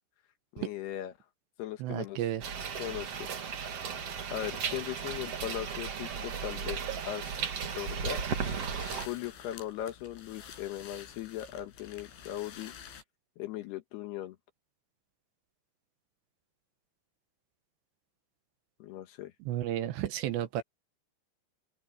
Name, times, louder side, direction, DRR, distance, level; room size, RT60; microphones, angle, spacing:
voice 1, 0.5-1.1 1.6-2.2 2.8-3.5 4.3-7.4 7.8-8.2 9.1-12.9 13.4-14.4 18.8-19.3, left 12 dB, 70° left, 2.9 m, -39 dB
voice 2, 1.8-2.4 19.5-20.6, right 12 dB, 75° right, 3.2 m, -32 dB
sound 1, 2.4-9.1, right 6 dB, 45° right, 2.2 m, -35 dB
sound 2, 7.7-13.0, left 8 dB, 85° left, 6.3 m, -50 dB
open air
omnidirectional pair, 5.4 m